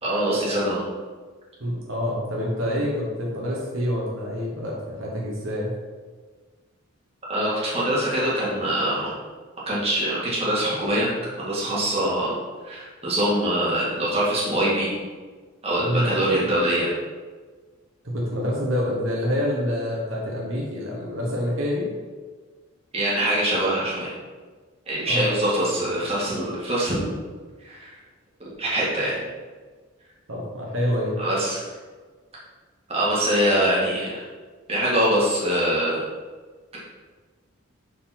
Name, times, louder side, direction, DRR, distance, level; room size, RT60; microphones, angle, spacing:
voice 1, 0.0-0.8 7.3-9.1 9.7-11.1 11.4-12.4 12.6-15.0 15.6-16.9 22.9-24.1 24.9-27.1 27.6-27.9 28.6-29.2 31.2-31.7 32.9-34.2 34.7-36.0, right 1 dB, 30° right, -7 dB, 1.8 m, -23 dB
voice 2, 1.6-5.7 15.8-16.3 18.0-21.9 25.1-25.3 30.3-31.2, equal, 70° right, -3 dB, 1.2 m, -27 dB
6.6 x 3.8 x 4.3 m, 1.4 s
head